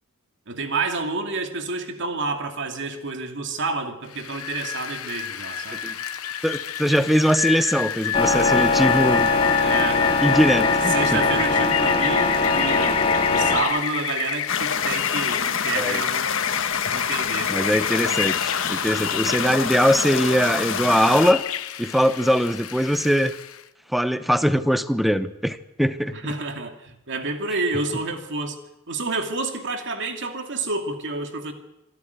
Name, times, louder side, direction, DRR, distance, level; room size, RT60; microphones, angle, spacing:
voice 1, 0.5-5.8 9.6-10.1 10.9-16.4 16.9-17.6 26.1-28.6 28.9-31.5, right 3 dB, 60° right, 5 dB, 2.5 m, -29 dB
Rain, 4.1-23.6, left 9 dB, 90° left, 1.0 m, -29 dB
voice 2, 6.4-9.3 10.2-11.2 15.8-16.0 17.5-21.4 21.8-23.3 23.9-26.1, equal, ahead, 12 dB, 0.9 m, -21 dB
sound 1, 8.1-13.6, left 3 dB, 25° left, 2.5 m, -21 dB
sound 2, 14.5-21.3, left 6 dB, 65° left, 1.6 m, -27 dB
26.0 x 11.5 x 9.4 m, 0.91 s
head